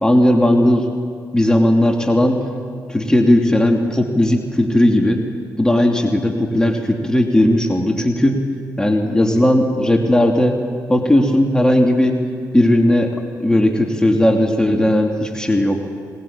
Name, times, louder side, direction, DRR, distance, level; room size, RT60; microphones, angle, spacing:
voice 1, 0.0-0.9 1.3-2.4 2.9-5.2 5.6-8.4 8.8-10.6 10.9-12.2 12.5-15.9, left 1 dB, 10° left, 2 dB, 2.8 m, -16 dB
20.5 x 20.0 x 8.8 m, 2.2 s
hypercardioid pair, 45°, 8 cm